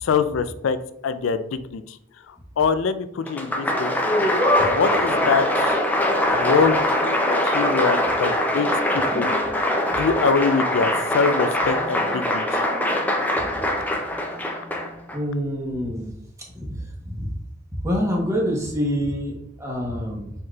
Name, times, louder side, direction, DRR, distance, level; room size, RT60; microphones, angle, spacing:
voice 1, 0.0-0.8 1.0-2.0 2.3-4.0 4.6-5.8 6.3-9.3 9.9-12.6, left 5 dB, 85° left, 12 dB, 0.4 m, -24 dB
Applause, 3.3-15.2, left 1 dB, 10° left, 0.5 m, -22 dB
voice 2, 15.1-16.1 16.5-17.3 17.8-20.3, equal, 15° right, -2 dB, 1.0 m, -26 dB
4.7 x 4.4 x 2.4 m, 0.76 s
head